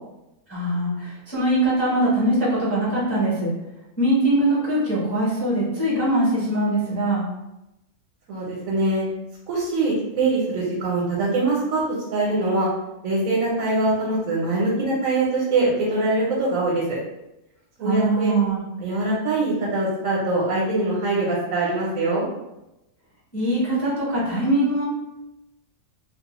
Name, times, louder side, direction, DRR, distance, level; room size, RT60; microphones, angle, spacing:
voice 1, 0.5-3.5 4.0-7.2 17.8-18.6 23.3-24.8, right 1 dB, 15° left, -8 dB, 0.5 m, -22 dB
voice 2, 8.3-9.0 9.5-11.8 12.1-12.7 13.0-17.0 17.8-18.3 18.8-22.3, right 2 dB, 75° right, -5 dB, 1.1 m, -23 dB
2.5 x 2.0 x 2.9 m, 0.92 s
omnidirectional pair, 1.4 m